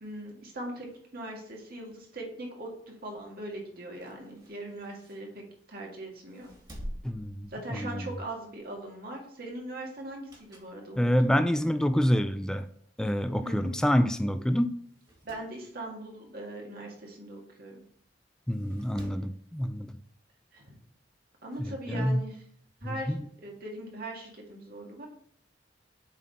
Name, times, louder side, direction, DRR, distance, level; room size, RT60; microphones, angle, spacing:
voice 1, 0.0-0.9 1.1-5.4 5.7-6.5 7.5-11.5 13.4-13.7 15.2-17.8 20.5-20.7 21.4-22.4 22.8-23.1 23.4-25.1, right 1 dB, 55° right, 0 dB, 1.7 m, -40 dB
sound 1, 3.9-5.8 6.2-8.1 8.5-8.7 10.0-10.8 11.3-11.4 12.3-12.4 12.6-12.7 12.9-13.0 13.8-14.0 14.3-14.4 14.8-15.5 17.4-17.5 18.5-19.3 20.6-20.7, equal, 25° right, 2.1 m, -47 dB
voice 2, 7.0-8.1 11.0-12.7 13.0-14.8 18.5-20.0 21.6-22.2 22.8-23.3, equal, 5° left, 9 dB, 0.3 m, -27 dB
7.3 x 4.1 x 4.1 m, 0.63 s
head